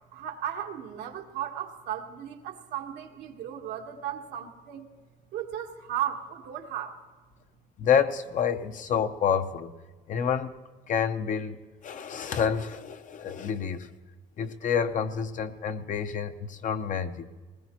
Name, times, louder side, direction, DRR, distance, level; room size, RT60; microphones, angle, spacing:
voice 1, 0.1-4.9 5.3-7.0, right 10 dB, 85° right, 3 dB, 1.3 m, -35 dB
voice 2, 7.8-9.7 10.1-10.5 10.9-13.9 14.4-17.4, left 7 dB, 50° left, 9 dB, 0.8 m, -28 dB
20.0 x 19.5 x 3.0 m, 1.3 s
cardioid pair, 110°, 17 cm